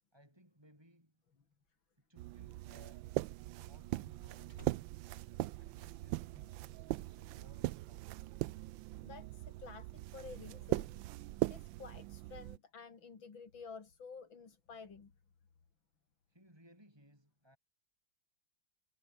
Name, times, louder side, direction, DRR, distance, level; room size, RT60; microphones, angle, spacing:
voice 1, 0.1-1.2 2.1-3.1 3.6-4.7 5.6-8.6 16.3-17.6, equal, 10° right, 7.6 m, -64 dB
Slam, 1.5-6.3 6.6-7.0, right 3 dB, 45° right, 4.3 m, -61 dB
sound 1, 2.2-12.6, right 17 dB, 80° right, 1.3 m, -40 dB
voice 2, 9.0-11.0 11.5-15.1, left 5 dB, 80° left, 3.7 m, -51 dB
omnidirectional pair, 2.1 m